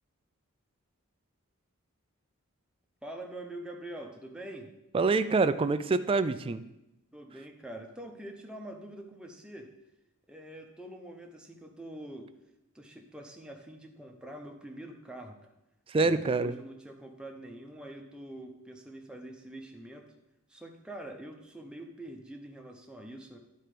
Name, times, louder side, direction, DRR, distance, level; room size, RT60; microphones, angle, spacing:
voice 1, 3.0-4.7 7.1-9.7 10.3-12.3 12.7-15.5 16.0-20.1 20.5-23.4, right 1 dB, 5° right, 2 dB, 0.8 m, -45 dB
voice 2, 4.9-6.6 15.9-16.5, right 3 dB, 25° right, 12 dB, 0.3 m, -26 dB
10.5 x 4.4 x 5.0 m, 0.89 s
head